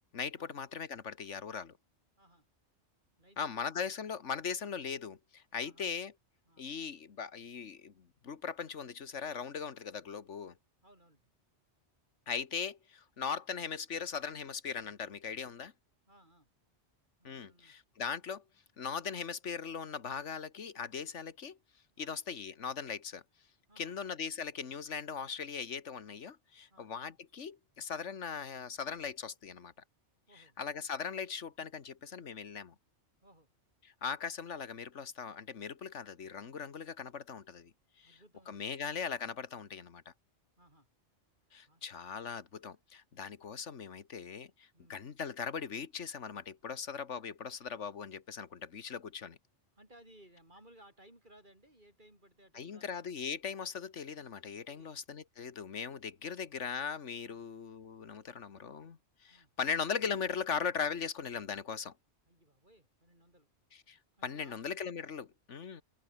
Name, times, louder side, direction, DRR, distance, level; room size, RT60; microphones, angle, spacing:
voice 1, 0.1-1.8 3.4-6.1 6.6-10.5 12.3-15.7 17.2-18.4 18.8-21.6 22.0-23.2 23.8-29.7 30.4-32.7 34.0-37.7 38.0-38.2 38.5-40.1 41.5-49.4 52.5-61.9 63.9-64.0 64.2-65.8, left 6 dB, 85° left, 1.8 m, -39 dB
voice 2, 2.2-2.5 3.2-3.9 5.6-5.9 6.5-6.7 10.8-11.2 16.1-16.5 17.2-17.7 22.0-22.1 23.7-24.0 26.7-26.9 28.1-28.2 30.3-30.6 33.2-33.5 38.0-38.8 40.6-40.9 41.7-41.8 44.7-45.0 49.7-53.0 54.7-54.9 57.2-57.5 59.3-59.5 62.3-63.5 64.2-64.6, right 1 dB, 45° right, 8.1 m, -62 dB
omnidirectional pair, 1.2 m